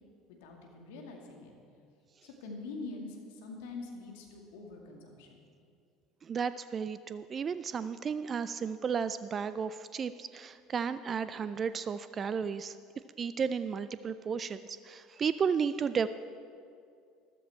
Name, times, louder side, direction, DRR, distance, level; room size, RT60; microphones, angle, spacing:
voice 1, 0.3-1.5 2.2-5.4, left 3 dB, 70° left, 1 dB, 2.2 m, -44 dB
voice 2, 6.2-12.8 13.2-16.1, right 6 dB, 35° right, 13 dB, 0.4 m, -33 dB
13.5 x 13.0 x 4.4 m, 2.3 s
hypercardioid pair, 70°, 0 cm